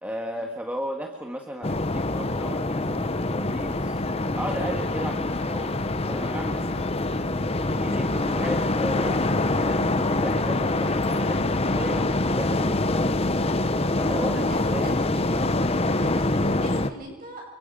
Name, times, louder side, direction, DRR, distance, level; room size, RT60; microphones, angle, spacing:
voice 1, 0.0-4.0 4.4-7.1 7.7-13.0 13.8-15.0, equal, 5° right, 2 dB, 1.6 m, -35 dB
sound 1, 1.6-16.9, left 2 dB, 25° left, 0.9 m, -25 dB
voice 2, 14.4-15.3 15.9-17.5, right 1 dB, 40° right, 1 dB, 7.2 m, -42 dB
29.0 x 24.0 x 5.2 m, 1.0 s
head